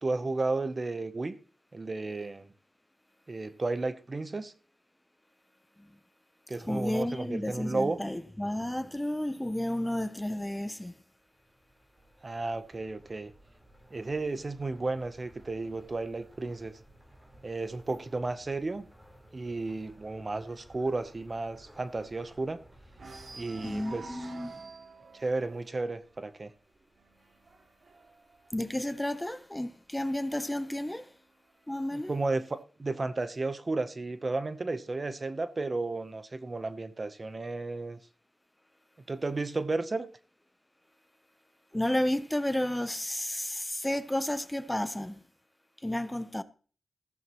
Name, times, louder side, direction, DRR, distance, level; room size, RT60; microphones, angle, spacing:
voice 1, 0.0-1.4 1.7-2.5 3.3-4.5 6.5-8.0 12.2-13.3 13.9-16.8 17.4-18.9 19.3-22.6 23.3-24.2 25.1-26.5 31.9-38.0 39.1-40.1, right 3 dB, 40° right, 0.8 m, -33 dB
voice 2, 6.6-11.0 23.6-24.7 28.5-31.1 31.7-32.1 41.7-45.2 45.8-46.4, left 1 dB, 10° left, 0.7 m, -32 dB
sound 1, 11.1-24.6, right 1 dB, 15° right, 3.9 m, -57 dB
sound 2, 14.2-17.8 18.2-18.5 18.8-18.9 19.3-22.5 22.9-29.5 30.3-31.3, right 3 dB, 65° right, 2.2 m, -51 dB
14.5 x 13.5 x 3.0 m
wide cardioid pair, 75°, 0 cm